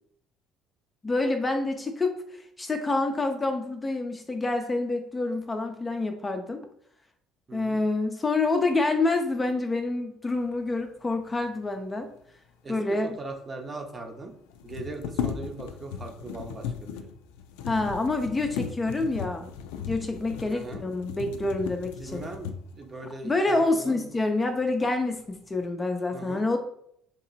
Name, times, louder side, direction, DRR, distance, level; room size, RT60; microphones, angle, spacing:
voice 1, 1.0-6.6 7.5-12.1 12.7-13.2 17.6-19.5 19.9-22.2 23.2-26.6, left 2 dB, 20° left, 5 dB, 0.5 m, -27 dB
voice 2, 7.5-7.8 12.6-14.3 14.6-17.1 20.5-20.8 22.0-24.0 26.1-26.4, right 3 dB, 30° right, 3 dB, 0.8 m, -40 dB
sound 1, 13.1-13.2 13.3-13.4 14.5-22.9 23.5-23.7 24.1-24.7 25.1-25.6, left 8 dB, 90° left, 0.3 m, -37 dB
3.0 x 2.8 x 4.0 m, 0.71 s
supercardioid pair, 85°, 0 cm